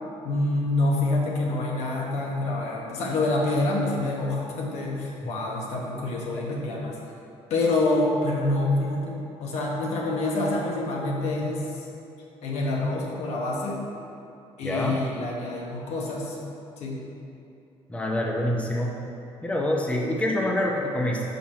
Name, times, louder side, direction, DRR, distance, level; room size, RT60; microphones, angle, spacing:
voice 1, 0.2-7.0 7.5-11.7 12.4-13.8 14.6-16.4 16.8-17.0, left 2 dB, 75° left, -2 dB, 1.1 m, -26 dB
voice 2, 14.6-15.0 17.9-18.9 19.4-21.2, left 1 dB, 10° left, -1 dB, 0.7 m, -26 dB
5.7 x 4.6 x 4.3 m, 2.7 s
cardioid pair, 105°, 11 cm